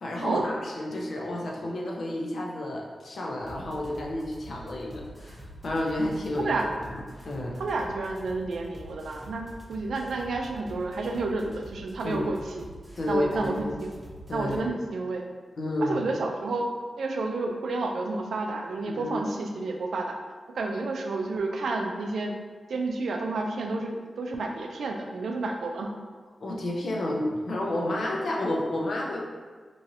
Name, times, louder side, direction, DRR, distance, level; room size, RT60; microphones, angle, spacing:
voice 1, 0.0-6.6 6.9-7.0 7.2-7.6 12.0-12.3 13.0-13.8 14.3-14.7 15.6-16.1 18.8-19.2 26.4-29.2, left 1 dB, 70° left, -2 dB, 0.5 m, -30 dB
sound 1, 3.4-14.6, right 1 dB, 40° right, 0.7 m, -46 dB
voice 2, 6.4-6.7 7.6-12.7 13.1-13.9 14.3-15.3 15.8-16.7 17.0-20.2 20.5-22.3 22.7-25.9, right 3 dB, 85° right, 2 dB, 0.3 m, -30 dB
3.0 x 2.6 x 2.6 m, 1.5 s
cardioid pair, 60°, 0 cm